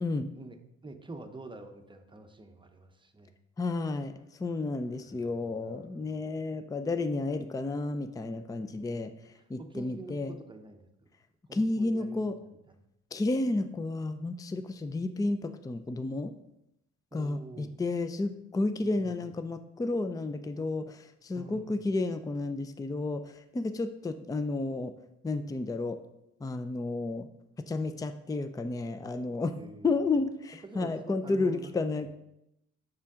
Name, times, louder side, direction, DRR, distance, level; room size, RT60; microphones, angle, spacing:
voice 1, 0.8-3.3 5.0-5.9 8.8-9.1 9.4-11.1 11.5-12.8 17.1-17.7 18.8-19.3 21.3-21.7 29.5-29.9 30.6-32.1, right 2 dB, 15° right, 6 dB, 0.8 m, -47 dB
voice 2, 3.6-4.1 4.4-9.1 9.5-10.3 11.5-12.4 13.1-16.3 17.1-24.9 25.2-26.0 26.4-27.3 27.6-29.6 29.8-32.1, left 2 dB, 10° left, 9 dB, 0.4 m, -31 dB
7.1 x 6.3 x 3.6 m, 0.83 s
cardioid pair, 90°, 30 cm